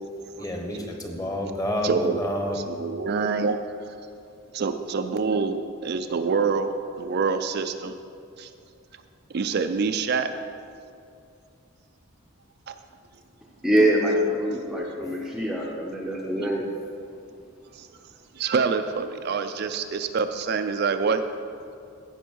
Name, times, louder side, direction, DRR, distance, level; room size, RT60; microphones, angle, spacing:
voice 1, 0.0-2.6, left 1 dB, 15° left, 2 dB, 1.1 m, -30 dB
voice 2, 1.8-2.2 2.5-3.6 3.9-4.0 4.5-8.0 8.4-8.5 9.3-10.3 12.7-12.8 14.5-14.7 17.7-17.9 18.3-21.2, right 5 dB, 50° right, 8 dB, 0.4 m, -26 dB
voice 3, 13.6-16.7, equal, ahead, -2 dB, 0.6 m, -24 dB
15.0 x 5.4 x 4.6 m, 2.5 s
head